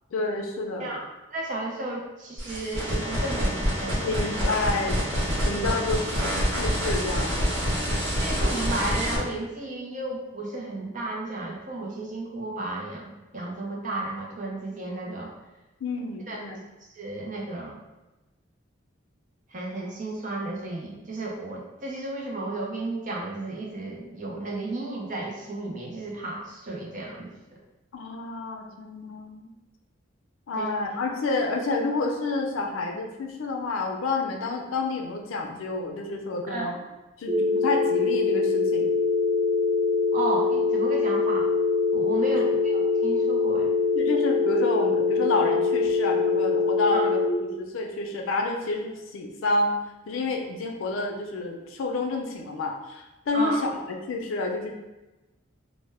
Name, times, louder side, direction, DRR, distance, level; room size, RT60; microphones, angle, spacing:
voice 1, 0.1-1.0 4.0-5.0 5.4-6.2 6.5-7.5 15.8-16.6 27.9-29.5 30.5-36.8 37.2-38.9 42.3-42.4 43.9-49.7 50.1-54.7, left 3 dB, 90° left, 2 dB, 0.4 m, -29 dB
voice 2, 0.8-4.1 8.2-15.3 16.3-16.4 17.0-17.8 19.5-27.6 30.6-30.7 36.5-36.7 40.1-41.5 41.9-43.7 46.9-47.1 53.3-53.6, right 2 dB, 40° right, -2 dB, 0.5 m, -33 dB
sound 1, 2.4-9.2, equal, 75° right, 1.0 m, -27 dB
sound 2, 37.3-47.3, left 4 dB, 10° left, 0.5 m, -23 dB
2.1 x 2.1 x 3.3 m, 1.0 s
head